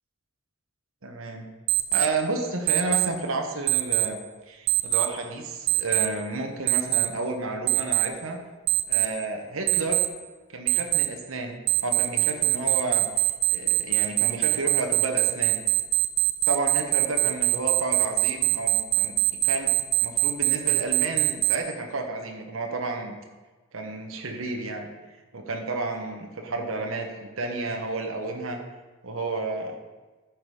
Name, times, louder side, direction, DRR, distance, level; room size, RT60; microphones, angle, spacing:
voice 1, 1.0-1.5 1.9-4.2 4.5-8.4 8.9-10.0 10.5-11.6 11.8-13.1 13.5-15.6 16.5-19.2 19.4-19.7 20.0-23.2 23.7-24.9 25.3-28.6 29.0-29.8, right 2 dB, 70° right, 3 dB, 1.2 m, -31 dB
Alarm, 1.7-2.1 2.7-3.1 3.7-4.1 4.7-5.1 5.7-6.1 6.7-7.1 7.7-8.1 8.7-9.1 9.7-10.1 10.7-11.1 11.7-21.6, right 18 dB, 50° right, 0.6 m, -22 dB
9.5 x 6.0 x 4.9 m, 1.3 s
head